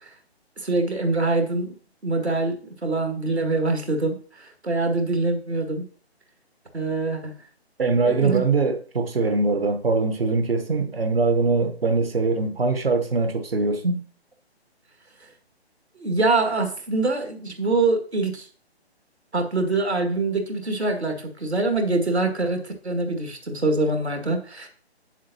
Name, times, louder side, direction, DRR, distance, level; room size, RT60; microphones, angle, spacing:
voice 1, 0.6-1.7 2.0-5.9 6.7-7.3 8.1-8.4 16.0-18.5 19.3-24.7, right 3 dB, 80° right, 1.8 m, -24 dB
voice 2, 7.8-14.0, right 3 dB, 60° right, 0.9 m, -22 dB
8.2 x 7.3 x 2.7 m
figure-of-eight pair, 145°, 32 cm